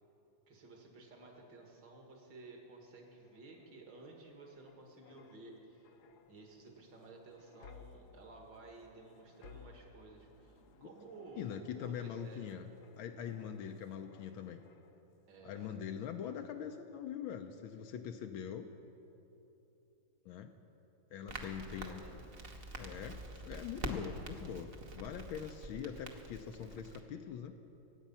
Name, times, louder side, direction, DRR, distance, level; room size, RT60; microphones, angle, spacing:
voice 1, 0.5-5.9 6.3-12.6 15.3-15.9 21.4-22.2, right 3 dB, 60° right, 0 dB, 2.5 m, -54 dB
sound 1, 2.9-15.2 15.6-15.8, left 6 dB, 65° left, 1.1 m, -61 dB
voice 2, 11.4-12.7 13.0-14.6 15.4-18.7 20.2-20.5 21.1-22.0 22.8-24.7 25.0-27.5, left 8 dB, 80° left, 5 dB, 1.4 m, -43 dB
Crackle, 21.3-27.0, right 2 dB, 40° right, 0.9 m, -46 dB
24.5 x 8.3 x 5.5 m, 3.0 s
omnidirectional pair, 2.2 m